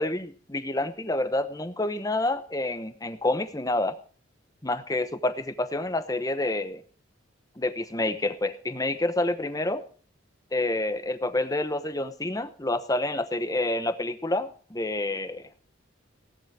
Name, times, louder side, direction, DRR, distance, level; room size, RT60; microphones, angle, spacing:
voice 1, 0.0-4.0 4.6-6.8 7.6-9.8 10.5-15.4, left 2 dB, 15° left, 11 dB, 0.9 m, -28 dB
17.0 x 11.5 x 4.8 m, 0.42 s
head